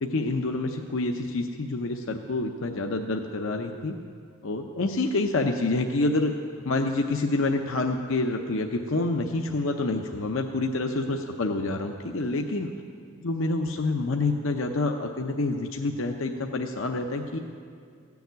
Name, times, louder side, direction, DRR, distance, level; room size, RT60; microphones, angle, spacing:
voice 1, 0.0-3.9 4.4-6.3 6.6-12.7 13.2-17.4, left 2 dB, 65° left, 3 dB, 0.7 m, -27 dB
15.5 x 7.1 x 9.3 m, 2.3 s
head